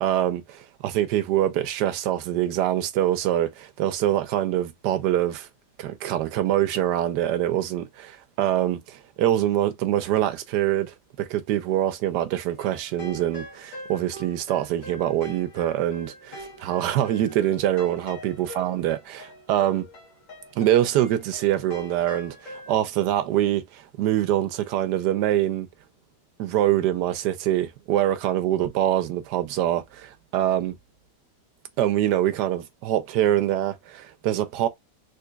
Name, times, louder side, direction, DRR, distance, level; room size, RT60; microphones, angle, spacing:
voice 1, 0.0-5.5 5.8-19.9 20.6-25.7 26.4-30.7 31.8-34.7, right 12 dB, 80° right, 1.2 m, -24 dB
sound 1, 12.6-22.7, left 1 dB, 80° left, 1.7 m, -43 dB
3.8 x 3.1 x 2.3 m
omnidirectional pair, 1.8 m